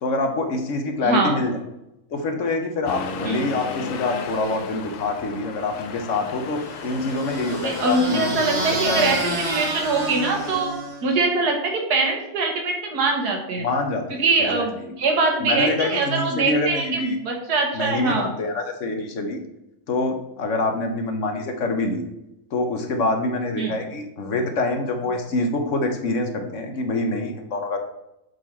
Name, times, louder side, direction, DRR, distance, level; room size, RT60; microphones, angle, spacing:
voice 1, 0.0-1.6 2.1-9.1 13.6-14.9 15.4-17.2 17.7-19.4 19.9-22.0 22.5-27.8, left 2 dB, 60° left, 5 dB, 1.1 m, -26 dB
Accelerating revving vroom, 2.9-10.6, left 5 dB, 85° left, 1.2 m, -35 dB
sound 1, 6.6-11.1, right 2 dB, 35° right, 1.9 m, -29 dB
voice 2, 7.6-10.7 11.0-13.7 14.1-18.3 23.6-23.8, right 3 dB, 85° right, 2 dB, 1.8 m, -23 dB
7.6 x 4.1 x 4.3 m, 0.88 s
omnidirectional pair, 1.6 m